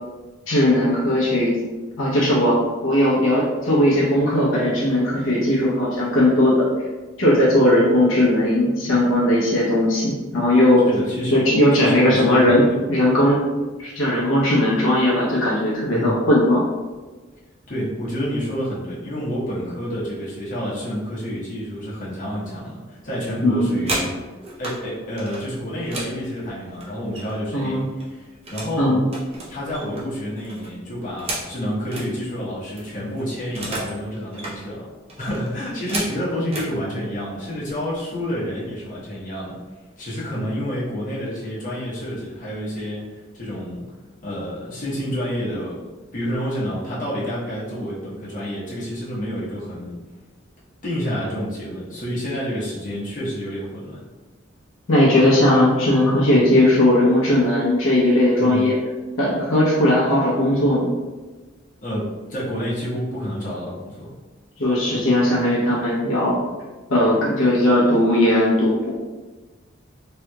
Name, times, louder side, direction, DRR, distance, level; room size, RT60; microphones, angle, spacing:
voice 1, 0.5-1.5 2.0-6.7 7.2-10.9 11.3-13.4 13.8-16.6 23.4-23.8 27.5-27.9 28.8-29.0 54.9-58.8 59.2-60.9 64.6-66.4 66.9-68.9, left 1 dB, 80° left, -6 dB, 0.9 m, -18 dB
voice 2, 10.9-11.5 11.8-12.8 15.9-16.2 17.7-24.2 24.6-29.0 29.5-34.9 35.2-39.6 40.0-43.9 44.2-45.8 46.1-50.0 50.8-54.0 58.4-58.7 61.8-64.1, equal, 40° left, -8 dB, 1.1 m, -29 dB
sound 1, 23.5-24.8 25.2-27.5 27.8-28.8 29.1-32.1 32.5-32.6 32.8-34.0 34.3-34.6 35.1-36.7 37.5-37.7 38.1-38.4 38.7-39.2, right 2 dB, 30° right, 0.7 m, -33 dB
3.4 x 2.9 x 2.3 m, 1.2 s
head